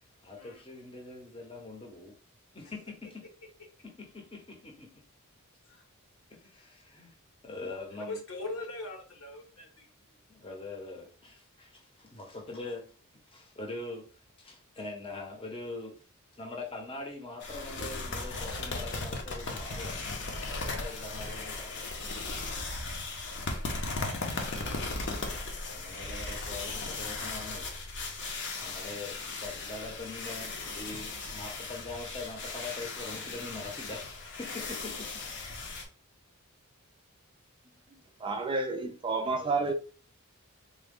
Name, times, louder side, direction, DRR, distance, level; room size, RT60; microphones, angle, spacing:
voice 1, 0.2-2.1 2.5-3.2 3.8-5.0 6.3-7.2 7.4-8.2 10.3-12.9 13.3-14.1 14.4-16.0 16.3-20.1 20.4-21.9 25.7-27.7 28.6-35.2 39.2-39.6, left 2 dB, 25° left, 0.7 m, -43 dB
voice 2, 7.9-9.9 20.5-20.8 22.5-22.7, left 2 dB, 75° left, 1.1 m, -41 dB
sound 1, 17.4-35.8, left 3 dB, 55° left, 0.7 m, -37 dB
voice 3, 38.2-39.7, right 3 dB, 20° right, 0.3 m, -30 dB
3.7 x 2.2 x 3.5 m
head